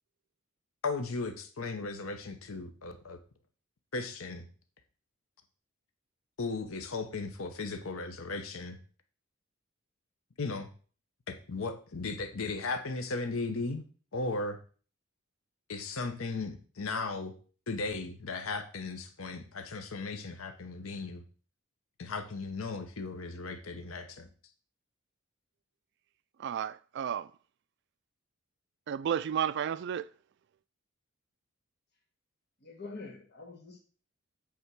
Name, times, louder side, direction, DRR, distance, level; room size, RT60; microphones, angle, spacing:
voice 1, 0.8-3.2 3.9-4.5 6.4-8.8 10.4-10.7 11.3-13.8 14.1-14.6 15.7-17.3 17.7-21.2 22.0-24.3, left 3 dB, 75° left, 0.9 m, -36 dB
voice 2, 26.4-27.3 28.9-30.1, right 8 dB, 55° right, 0.3 m, -32 dB
voice 3, 32.6-33.8, left 3 dB, 50° left, 1.9 m, -45 dB
8.4 x 3.6 x 6.0 m
head